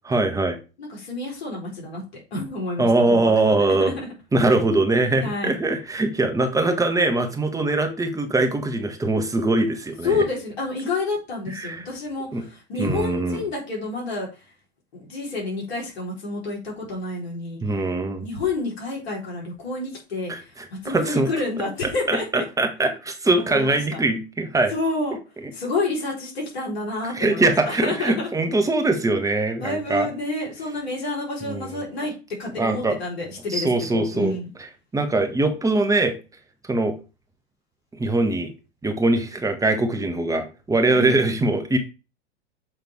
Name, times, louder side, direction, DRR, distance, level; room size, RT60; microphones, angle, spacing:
voice 1, 0.0-0.6 2.8-3.9 4.3-10.2 11.5-11.8 12.3-12.4 12.8-13.4 17.6-18.3 20.3-21.3 22.1-24.7 27.1-30.1 31.4-31.7 32.6-33.0 33.5-34.4 34.9-36.2 36.7-36.9 37.9-38.5 38.8-41.8, right 2 dB, 10° right, 5 dB, 1.4 m, -22 dB
voice 2, 0.8-4.1 5.2-5.6 10.0-14.5 14.9-17.6 18.2-22.4 23.4-24.0 24.7-25.2 25.5-28.3 29.6-32.1 32.4-34.5 40.9-41.3, left 3 dB, 70° left, -3 dB, 4.3 m, -29 dB
7.3 x 3.7 x 4.7 m, 0.31 s
hypercardioid pair, 100°, 33 cm